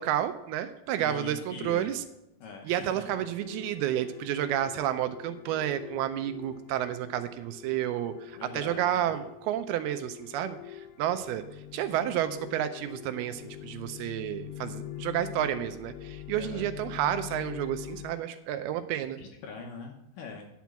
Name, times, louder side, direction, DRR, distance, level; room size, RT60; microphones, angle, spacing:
voice 1, 0.0-2.0 2.7-11.4 11.7-19.2, right 11 dB, 80° right, 10 dB, 2.4 m, -31 dB
voice 2, 1.0-1.9 2.4-3.2 8.4-9.2 16.4-16.7 19.2-20.5, left 4 dB, 70° left, 2 dB, 2.2 m, -42 dB
sound 1, 3.1-18.2, left 12 dB, 85° left, 2.6 m, -44 dB
10.5 x 6.0 x 7.0 m, 0.87 s
omnidirectional pair, 4.6 m